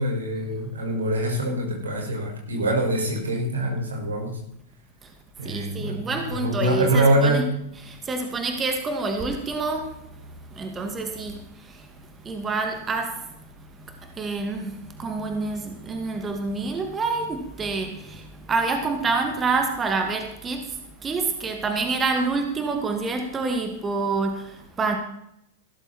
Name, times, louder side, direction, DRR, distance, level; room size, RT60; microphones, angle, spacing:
voice 1, 0.0-4.3 5.4-7.4, right 1 dB, 80° right, 1 dB, 5.6 m, -24 dB
voice 2, 5.4-7.5 7.8-10.2 10.5-25.0, right 3 dB, 20° right, 5 dB, 2.3 m, -28 dB
16.5 x 13.0 x 4.4 m, 0.80 s
figure-of-eight pair, 100°, 0 cm